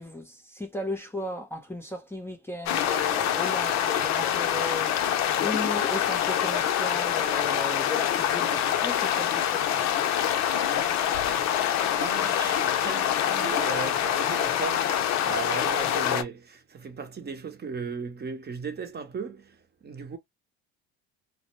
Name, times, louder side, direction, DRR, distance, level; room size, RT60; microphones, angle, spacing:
voice 1, 0.0-9.9, left 1 dB, 10° left, 0.6 m, -36 dB
sound 1, 2.6-16.2, left 10 dB, 60° left, 0.6 m, -25 dB
voice 2, 10.5-20.2, right 6 dB, 35° right, 0.8 m, -37 dB
2.1 x 2.0 x 3.0 m
supercardioid pair, 75°, 31 cm